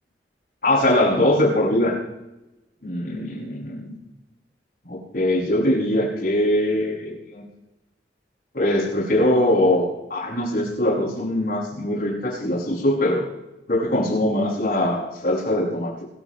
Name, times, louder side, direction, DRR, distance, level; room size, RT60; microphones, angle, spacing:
voice 1, 0.6-2.0 2.8-3.9 4.8-7.4 8.5-13.2 13.7-16.0, left 1 dB, 55° left, -4 dB, 7.0 m, -22 dB
25.0 x 14.5 x 3.2 m, 0.97 s
head